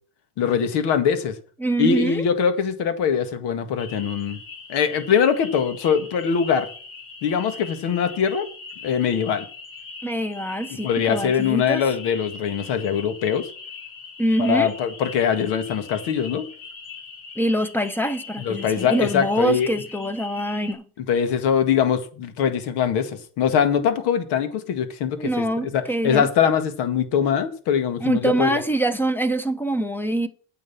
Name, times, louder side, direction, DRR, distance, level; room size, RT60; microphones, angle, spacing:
voice 1, 0.4-1.4 1.8-4.4 4.7-6.7 7.2-8.5 8.8-9.5 10.7-13.5 14.4-16.5 18.4-19.7 21.0-28.6, left 7 dB, 65° left, 2.0 m, -22 dB
voice 2, 1.6-2.2 10.0-11.8 14.2-14.7 17.4-20.8 25.2-26.3 28.0-30.3, right 1 dB, 5° left, 0.9 m, -24 dB
sound 1, 3.8-20.7, left 4 dB, 50° left, 3.4 m, -40 dB
9.1 x 6.8 x 7.2 m
cardioid pair, 115°, 43 cm